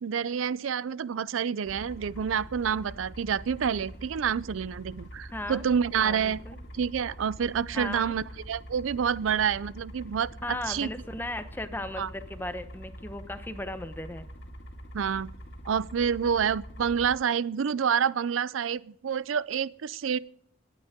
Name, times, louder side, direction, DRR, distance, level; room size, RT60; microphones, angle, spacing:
voice 1, 0.0-6.4 6.7-10.9 12.0-12.1 14.9-15.3 15.6-20.2, right 7 dB, 85° right, 0.4 m, -28 dB
sound 1, 1.6-17.2, equal, 55° left, 2.3 m, -44 dB
voice 2, 5.3-5.6 6.0-6.6 7.7-8.1 10.4-14.3, left 1 dB, 10° left, 0.9 m, -36 dB
19.5 x 9.2 x 3.7 m
head